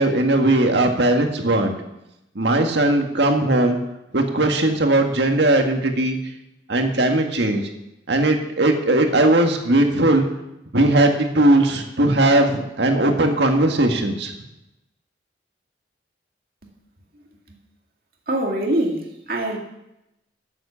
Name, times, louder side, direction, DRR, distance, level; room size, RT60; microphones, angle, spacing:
voice 1, 0.0-1.7 2.4-3.8 4.1-6.2 6.7-7.7 8.1-10.3 10.7-14.3, right 1 dB, 70° right, 4 dB, 1.7 m, -18 dB
voice 2, 18.3-19.6, right 1 dB, 50° right, 1 dB, 2.2 m, -23 dB
12.5 x 7.7 x 7.0 m, 0.88 s
head